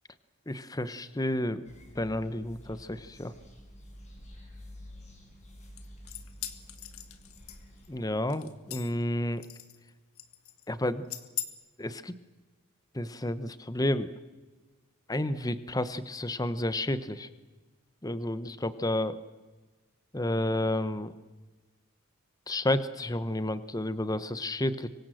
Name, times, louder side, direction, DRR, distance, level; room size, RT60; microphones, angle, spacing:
voice 1, 0.5-1.6 2.0-3.3 7.9-9.4 10.7-11.0 11.8-12.1 12.9-14.1 15.1-17.3 18.0-19.2 20.1-21.1 22.5-24.9, left 1 dB, 15° left, 14 dB, 0.9 m, -31 dB
sound 1, 1.6-8.0, equal, 35° left, 6.1 m, -50 dB
sound 2, 5.8-7.9 8.3-9.0 9.4-9.9 10.2-10.7 11.1-11.5, left 13 dB, 85° left, 1.9 m, -40 dB
26.5 x 24.0 x 7.7 m, 1.2 s
head